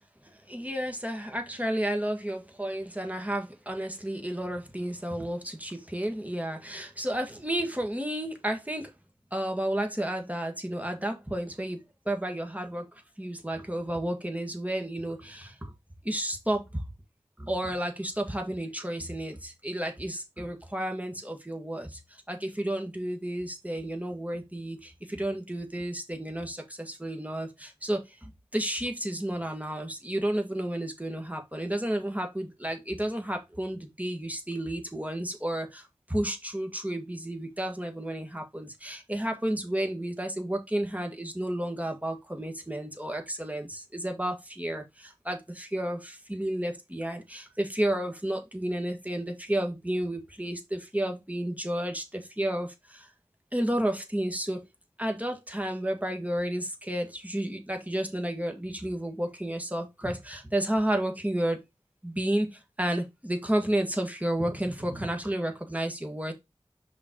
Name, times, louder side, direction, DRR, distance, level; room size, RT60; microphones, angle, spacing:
voice 1, 0.5-8.9 9.3-15.7 16.0-16.8 17.4-53.1 53.5-54.7 55.0-61.6 62.0-66.3, right 1 dB, 15° right, 1.8 m, -32 dB
5.5 x 3.9 x 4.5 m
wide cardioid pair, 45°, 11 cm